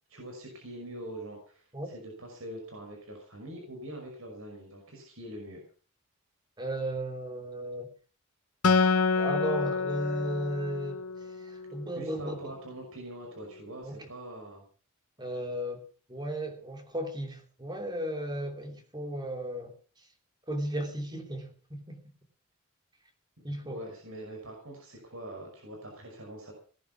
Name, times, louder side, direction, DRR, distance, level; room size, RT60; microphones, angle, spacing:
voice 1, 0.1-5.6 9.0-9.1 12.0-14.6 23.6-26.5, right 1 dB, 70° right, 1 dB, 5.7 m, -43 dB
voice 2, 6.6-7.9 9.2-12.5 13.8-14.0 15.2-19.7 20.5-22.0 23.4-23.8, right 1 dB, 20° right, 4 dB, 3.1 m, -35 dB
Acoustic guitar, 8.6-12.1, left 4 dB, 80° left, 1.0 m, -28 dB
18.5 x 10.5 x 5.9 m, 0.41 s
head